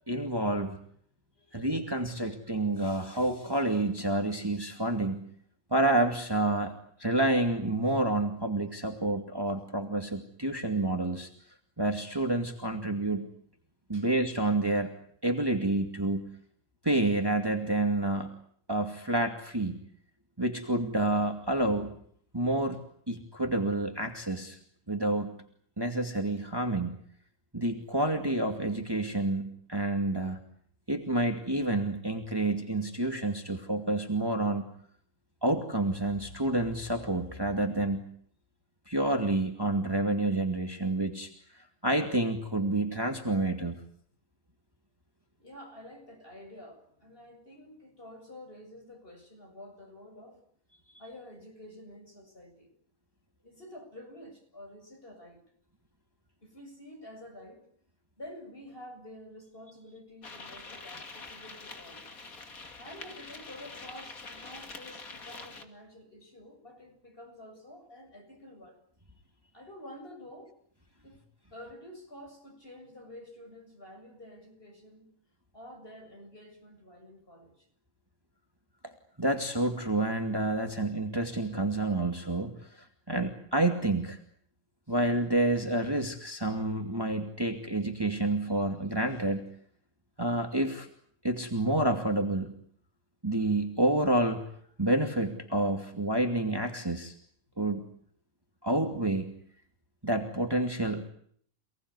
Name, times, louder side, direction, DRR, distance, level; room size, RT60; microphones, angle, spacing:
voice 1, 0.1-0.8 1.5-5.2 5.7-6.7 7.0-11.3 11.8-13.3 13.9-14.9 15.2-16.2 16.8-18.3 18.7-19.8 20.4-21.9 22.3-22.8 23.1-24.6 24.9-25.4 25.8-27.0 27.5-30.4 30.9-34.7 35.4-38.0 38.9-43.8 78.8-78.9 79.2-82.6 83.1-84.2 84.9-89.4 90.2-90.9 91.2-92.5 93.2-94.4 94.8-97.1 97.6-97.8 98.6-99.3 100.0-101.1, right 2 dB, 15° right, 2.5 m, -29 dB
voice 2, 1.4-1.7 13.9-14.1 45.4-50.4 51.0-52.7 53.4-55.4 56.4-57.6 58.2-62.1 62.8-68.8 69.5-70.6 71.0-71.2 71.5-75.1 75.5-77.7 84.9-85.0, left 1 dB, 40° left, 7.9 m, -49 dB
sound 1, 60.2-65.6, left 3 dB, 85° left, 3.1 m, -45 dB
29.0 x 19.5 x 9.7 m
omnidirectional pair, 1.5 m